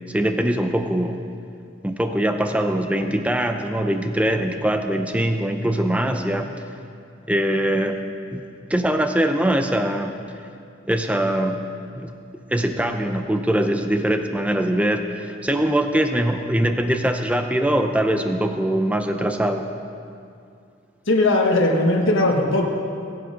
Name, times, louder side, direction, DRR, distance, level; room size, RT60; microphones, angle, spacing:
voice 1, 0.1-1.2 1.8-6.5 7.3-8.0 8.3-8.4 8.7-10.1 10.9-11.7 11.9-12.1 12.5-19.6, right 1 dB, 5° right, 6 dB, 0.6 m, -22 dB
voice 2, 21.1-22.7, left 2 dB, 70° left, 0 dB, 1.5 m, -18 dB
22.0 x 7.7 x 5.1 m, 2.4 s
head